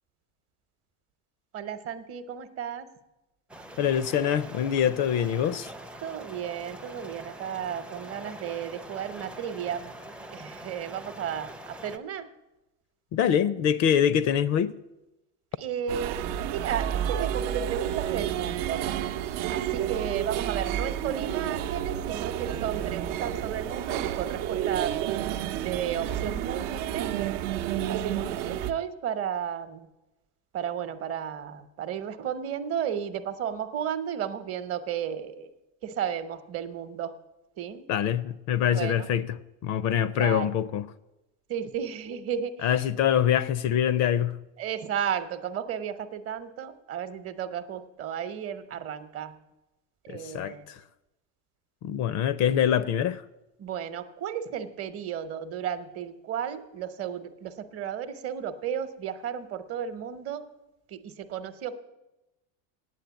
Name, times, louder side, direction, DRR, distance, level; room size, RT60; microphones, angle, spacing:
voice 1, 1.5-2.9 6.0-9.9 10.3-12.3 15.6-18.8 19.5-24.9 25.6-27.1 27.9-29.9 30.5-35.5 35.8-37.1 37.6-37.8 38.7-39.0 40.2-40.5 41.5-42.9 44.6-49.3 50.0-50.7 53.6-60.4 60.9-61.7, right 8 dB, 40° right, 0.9 m, -33 dB
sound 1, 3.5-12.0, right 1 dB, 5° right, 0.5 m, -44 dB
voice 2, 3.8-5.7 13.1-14.7 37.9-40.9 42.6-44.4 50.1-50.8 51.8-53.2, left 9 dB, 50° left, 0.5 m, -25 dB
sound 2, 15.9-28.7, right 11 dB, 65° right, 0.7 m, -30 dB
9.3 x 8.2 x 8.1 m
supercardioid pair, 125°, 36 cm